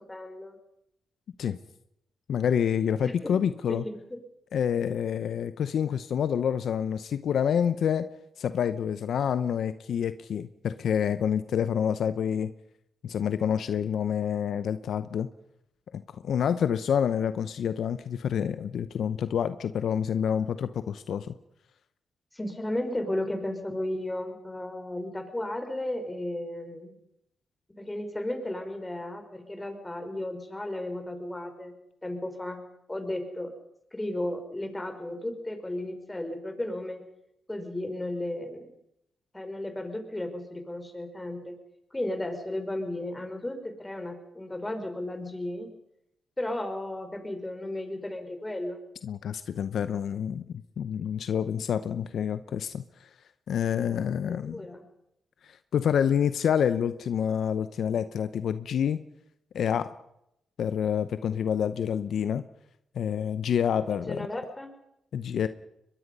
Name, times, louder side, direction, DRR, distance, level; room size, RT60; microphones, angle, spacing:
voice 1, 0.1-0.6 3.0-3.3 3.7-4.2 22.3-27.0 27.8-31.7 32.0-32.6 32.9-33.5 33.9-37.1 37.5-38.7 39.3-41.6 41.9-45.7 46.4-48.8 53.8-54.9 63.9-64.7, left 1 dB, 20° left, 6 dB, 5.2 m, -34 dB
voice 2, 2.3-3.8 4.5-8.1 8.4-12.5 13.0-15.3 15.9-21.3 49.0-50.4 50.8-52.8 53.5-54.6 55.4-59.0 59.5-59.9 60.6-62.4 62.9-64.3 65.1-65.5, left 8 dB, 75° left, 12 dB, 0.8 m, -28 dB
23.0 x 21.5 x 5.5 m, 0.80 s
cardioid pair, 60°, 0 cm